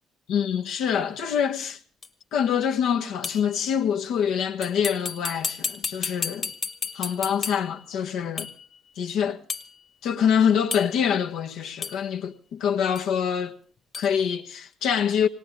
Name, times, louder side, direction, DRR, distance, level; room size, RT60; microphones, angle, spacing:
voice 1, 0.3-1.8 2.3-6.5 6.9-8.5 9.0-9.4 10.0-13.5 13.9-15.3, left 8 dB, 75° left, 1.5 m, -25 dB
sound 1, 2.0-2.1 3.2-3.6 4.6-7.8 8.4-8.7 9.5-9.7 10.7-11.1 11.8-12.1 13.0-13.1 13.9-14.1, left 5 dB, 40° left, 1.7 m, -33 dB
19.5 x 18.5 x 3.8 m
cardioid pair, 85°, 0 cm